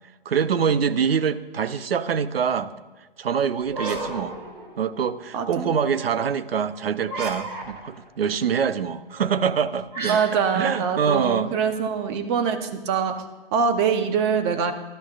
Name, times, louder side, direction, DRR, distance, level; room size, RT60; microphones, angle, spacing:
voice 1, 0.3-2.7 3.2-4.4 4.8-10.2 10.5-11.5, right 7 dB, 80° right, 14 dB, 0.7 m, -24 dB
sound 1, 3.7-5.2 7.0-8.1 9.9-11.8, right 3 dB, 60° right, 3.0 m, -34 dB
voice 2, 5.3-5.7 10.1-13.2 13.5-14.7, right 6 dB, 30° right, 8 dB, 0.9 m, -24 dB
18.5 x 12.5 x 2.5 m, 1.2 s
hypercardioid pair, 140°, 29 cm